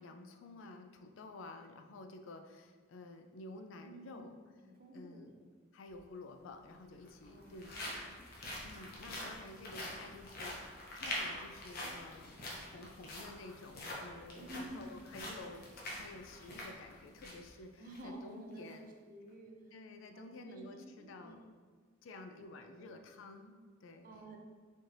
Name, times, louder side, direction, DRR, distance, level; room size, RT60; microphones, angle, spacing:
voice 1, 0.0-4.4 4.9-5.3 5.7-8.2 8.6-10.6 10.9-18.9 19.7-21.4 22.0-24.1, left 2 dB, 70° left, 6 dB, 0.3 m, -51 dB
voice 2, 3.8-4.4 4.7-5.4 7.3-8.1 14.4-15.1 17.8-19.7 20.1-21.4 22.4-22.8 24.0-24.4, right 1 dB, 45° right, 1 dB, 0.5 m, -51 dB
sound 1, 5.9-6.0 6.9-17.5 17.9-18.0 18.5-18.7, left 1 dB, 50° left, 0.7 m, -45 dB
4.2 x 3.2 x 2.5 m, 1.5 s
head